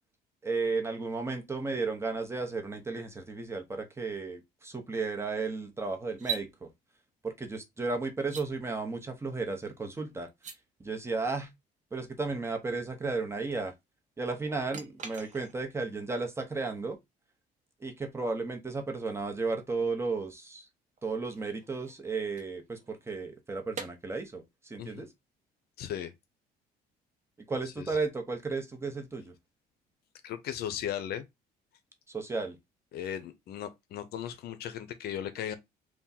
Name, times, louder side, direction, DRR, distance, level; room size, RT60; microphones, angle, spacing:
voice 1, 0.4-6.7 7.2-10.3 10.8-11.5 11.9-13.7 14.2-17.0 17.8-20.7 21.0-25.1 27.5-29.3 32.1-32.6, right 3 dB, 15° right, 0.9 m, -34 dB
sound 1, 6.1-6.5 8.2-8.5 10.3-10.6 14.7-15.7 18.9-19.0 21.0-23.1 23.7-23.9, right 8 dB, 45° right, 0.9 m, -41 dB
voice 2, 25.8-26.1 27.8-27.9 30.2-31.2 32.9-35.6, left 10 dB, 70° left, 0.6 m, -36 dB
3.5 x 2.3 x 4.1 m
cardioid pair, 110°, 17 cm